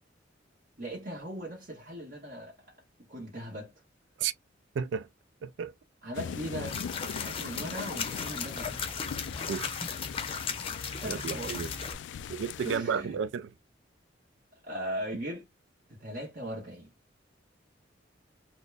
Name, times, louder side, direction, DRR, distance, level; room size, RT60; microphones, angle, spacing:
voice 1, 0.8-2.8 3.1-3.7 6.0-8.9 11.0-11.8 12.6-13.2 14.6-15.5 15.9-16.9, right 1 dB, 45° right, 1.3 m, -39 dB
voice 2, 4.8-5.1 5.4-5.7 9.5-9.8 11.0-11.7 12.3-13.5, right 7 dB, 75° right, 0.3 m, -32 dB
sound 1, 6.1-12.8, left 7 dB, 65° left, 0.3 m, -41 dB
sound 2, 6.7-11.9, left 5 dB, 30° left, 0.7 m, -36 dB
4.2 x 2.0 x 3.3 m
head